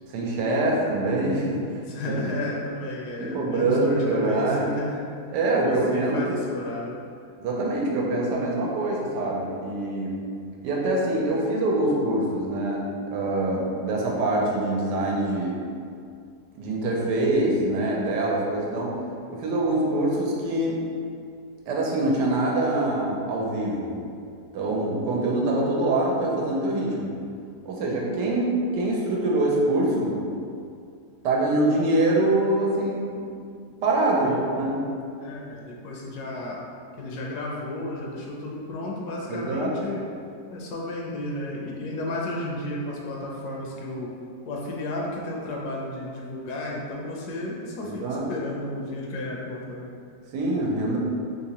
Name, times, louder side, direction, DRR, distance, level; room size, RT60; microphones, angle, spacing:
voice 1, 0.1-1.6 2.0-2.2 3.2-4.7 5.3-6.4 7.4-10.1 10.6-15.6 16.5-19.0 19.3-20.8 21.7-24.0 24.5-27.2 27.6-30.2 31.2-33.3 33.8-34.9 39.3-39.7 47.8-48.2 50.3-51.0, right 2 dB, 90° right, -3 dB, 1.3 m, -24 dB
voice 2, 1.9-5.0 5.6-7.0 34.2-34.5 35.2-36.6 37.0-40.1 40.5-44.1 44.5-49.9, left 1 dB, 75° left, -2 dB, 1.1 m, -33 dB
3.5 x 2.8 x 2.9 m, 2.3 s
omnidirectional pair, 1.8 m